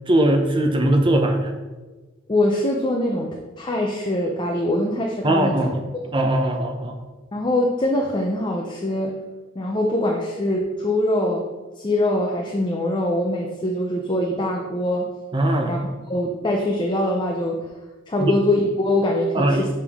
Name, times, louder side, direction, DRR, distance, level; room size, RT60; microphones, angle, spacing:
voice 1, 0.1-1.5 5.2-5.8 6.1-7.0 15.3-15.7 18.2-18.4 19.3-19.7, right 1 dB, 25° right, 4 dB, 0.7 m, -20 dB
voice 2, 2.3-5.7 7.3-9.1 9.6-11.5 11.8-15.1 15.6-15.8 16.1-17.7 18.1-19.7, left 1 dB, 25° left, 0 dB, 0.6 m, -23 dB
6.5 x 5.3 x 3.6 m, 1.3 s
head